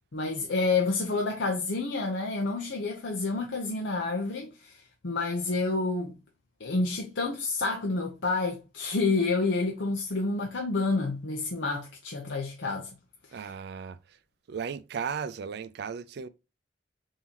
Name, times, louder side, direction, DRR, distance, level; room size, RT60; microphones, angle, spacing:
voice 1, 0.1-6.1 6.6-12.9 13.3-13.5, left 3 dB, 85° left, 0.8 m, -29 dB
voice 2, 13.3-14.2 14.5-16.3, right 6 dB, 65° right, 0.4 m, -36 dB
4.2 x 3.7 x 2.9 m
head